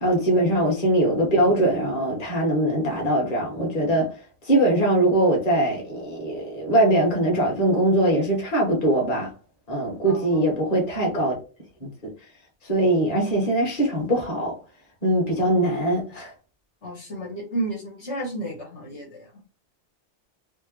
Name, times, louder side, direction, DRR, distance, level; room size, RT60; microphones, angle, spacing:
voice 1, 0.0-4.1 4.5-9.3 9.7-11.4 12.7-14.5 15.0-16.3, right 1 dB, 35° left, 1.4 m, -21 dB
voice 2, 10.1-10.4 15.4-15.5 16.8-19.4, right 1 dB, 80° left, 1.7 m, -32 dB
4.4 x 2.1 x 3.0 m
omnidirectional pair, 1.2 m